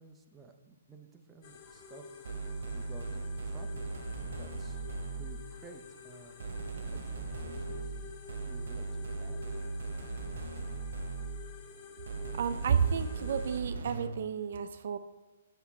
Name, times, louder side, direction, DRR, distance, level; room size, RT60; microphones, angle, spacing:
voice 1, 0.0-4.9 5.1-6.4 6.9-8.9 9.2-9.4, right 3 dB, 10° right, 3 dB, 0.6 m, -54 dB
sound 1, 1.4-13.6, left 5 dB, 30° left, 0.7 m, -50 dB
Wind instrument woodwind instrument, 1.6-6.4, right 1 dB, 65° left, 1.2 m, -67 dB
sound 2, 2.2-5.5 6.4-11.5 12.1-14.3, right 3 dB, 75° right, 1.1 m, -38 dB
voice 2, 12.3-15.0, right 7 dB, 55° right, 11 dB, 0.4 m, -31 dB
7.9 x 5.8 x 4.2 m, 1.2 s
hypercardioid pair, 170°, 0 cm